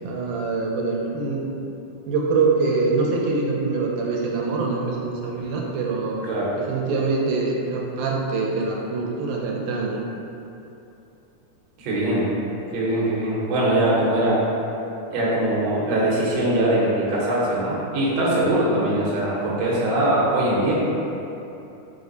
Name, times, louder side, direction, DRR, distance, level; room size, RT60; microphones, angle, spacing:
voice 1, 0.0-1.4 2.1-6.3 6.6-10.0, right 4 dB, 85° right, -2 dB, 2.0 m, -24 dB
voice 2, 11.8-12.3 12.7-14.4 15.1-20.7, right 1 dB, 70° right, -6 dB, 1.7 m, -22 dB
5.3 x 2.1 x 3.7 m, 2.8 s
omnidirectional pair, 3.5 m